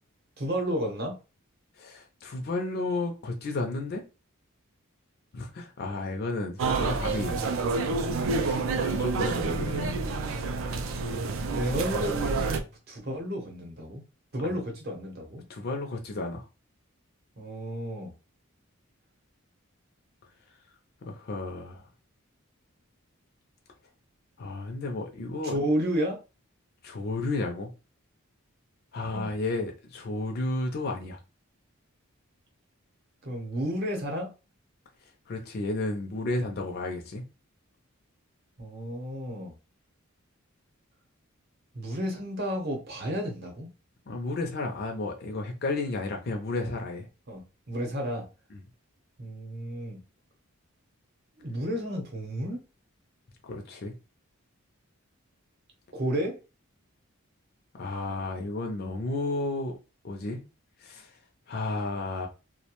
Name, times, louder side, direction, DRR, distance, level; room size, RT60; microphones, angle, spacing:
voice 1, 0.4-1.2 11.5-14.0 14.3-15.4 17.4-18.1 25.4-26.2 29.1-29.3 33.2-34.3 38.6-39.5 41.7-43.7 47.3-47.4 47.7-48.2 49.2-50.0 51.4-52.6 55.9-56.3, equal, 45° right, 0.8 m, -32 dB
voice 2, 1.8-4.0 5.3-7.4 8.4-10.0 14.4-14.5 15.5-16.4 21.0-21.8 24.4-25.6 26.8-27.7 28.9-31.2 35.3-37.2 44.1-47.1 48.5-48.6 53.4-53.9 57.7-59.8 60.0-60.4 60.8-61.2 61.5-62.3, left 2 dB, 45° left, 0.4 m, -32 dB
sound 1, 6.6-12.6, right 4 dB, 60° right, 0.3 m, -28 dB
2.4 x 2.1 x 2.9 m
head